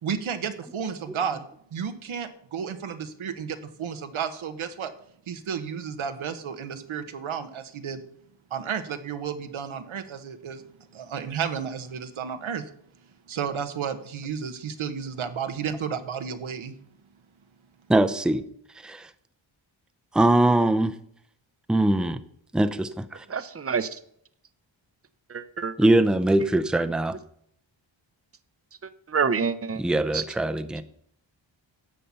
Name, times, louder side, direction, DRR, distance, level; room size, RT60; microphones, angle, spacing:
voice 1, 0.0-4.9 5.3-8.0 8.5-10.7 10.9-12.7 13.3-16.7, right 7 dB, 90° right, 1.2 m, -32 dB
voice 2, 17.9-18.4 18.8-19.1 20.1-20.9 21.7-22.2 22.5-23.2 25.8-27.2 29.8-30.8, right 1 dB, ahead, 0.6 m, -22 dB
voice 3, 23.3-24.0 25.3-25.8 28.8-29.8 30.1-30.3, right 5 dB, 30° right, 0.8 m, -27 dB
12.0 x 7.4 x 5.6 m
wide cardioid pair, 80°, 47 cm